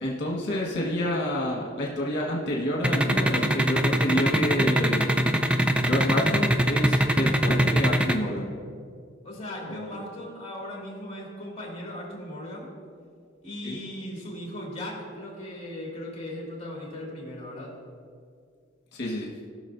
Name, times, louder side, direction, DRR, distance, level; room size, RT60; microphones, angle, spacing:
voice 1, 0.0-5.1 5.8-8.5 9.7-10.0 13.6-13.8 18.9-19.3, left 1 dB, 60° left, -3 dB, 1.6 m, -29 dB
sound 1, 2.8-8.1, right 1 dB, 5° right, 0.4 m, -21 dB
voice 2, 9.2-12.7 13.4-17.8, left 1 dB, 35° left, -3 dB, 2.4 m, -38 dB
18.0 x 6.4 x 2.7 m, 2.1 s
head